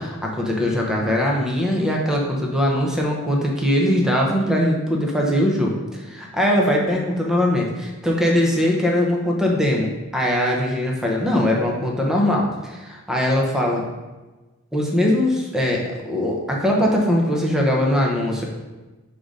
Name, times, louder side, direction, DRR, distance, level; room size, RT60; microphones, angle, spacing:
voice 1, 0.0-13.8 14.7-18.4, left 1 dB, 5° right, -2 dB, 0.8 m, -21 dB
4.7 x 3.9 x 5.2 m, 1.2 s
head